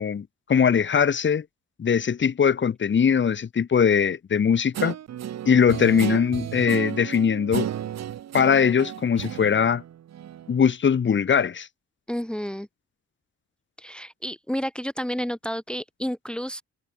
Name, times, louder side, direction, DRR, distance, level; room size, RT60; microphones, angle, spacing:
voice 1, 0.0-1.4 1.8-4.9 5.4-7.7 8.3-9.8 10.5-11.7, left 7 dB, 40° left, 1.5 m, -21 dB
Guitar, 4.7-10.6, right 10 dB, 60° right, 1.6 m, -33 dB
voice 2, 12.1-12.7 13.8-16.6, equal, 5° left, 1.8 m, -30 dB
cardioid pair, 90°, 30 cm